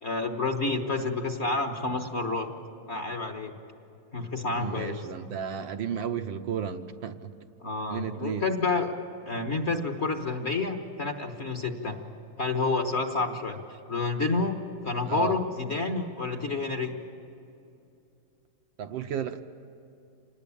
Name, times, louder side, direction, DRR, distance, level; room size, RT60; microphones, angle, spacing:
voice 1, 0.0-2.5 2.9-3.5 4.1-5.0 7.6-8.9 9.2-12.0 12.4-13.6 13.9-14.6 14.8-16.9, left 3 dB, 35° left, 5 dB, 1.4 m, -29 dB
voice 2, 4.6-7.3 7.9-8.5 15.1-15.4 18.8-19.4, right 8 dB, 70° right, 7 dB, 1.5 m, -33 dB
27.0 x 19.5 x 8.7 m, 2.7 s
omnidirectional pair, 2.3 m